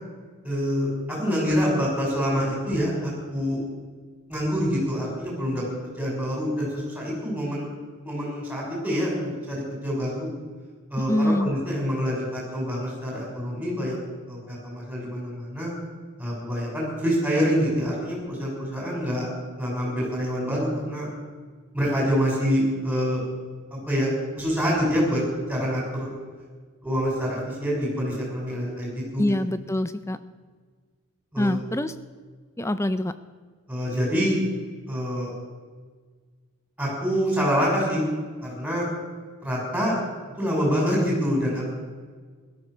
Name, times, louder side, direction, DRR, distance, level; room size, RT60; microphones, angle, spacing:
voice 1, 0.4-3.6 4.3-7.7 8.0-10.3 10.9-14.0 14.3-15.7 16.2-19.3 19.6-21.1 21.7-23.2 23.7-24.1 24.4-25.2 25.5-26.1 26.8-29.2 31.3-31.6 33.7-34.4 34.9-35.3 36.8-38.0 38.4-38.9 39.4-39.9 40.4-41.7, equal, 5° right, -3 dB, 6.1 m, -26 dB
voice 2, 11.1-11.5 29.2-30.2 31.4-31.9 32.6-33.1, left 1 dB, 15° left, 13 dB, 0.6 m, -24 dB
17.0 x 13.0 x 6.3 m, 1.5 s
head